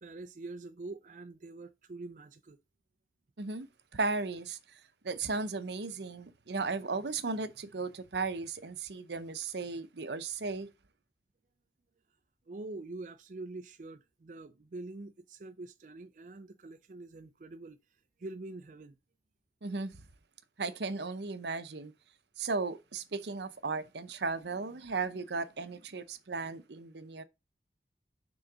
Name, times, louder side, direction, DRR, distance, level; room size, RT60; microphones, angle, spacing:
voice 1, 0.0-2.6 12.5-17.8 18.2-19.0, right 2 dB, 45° right, 0.4 m, -45 dB
voice 2, 3.9-10.7 19.6-20.0 20.6-21.9 22.4-27.2, right 4 dB, 75° right, 0.7 m, -36 dB
6.2 x 3.9 x 5.9 m
head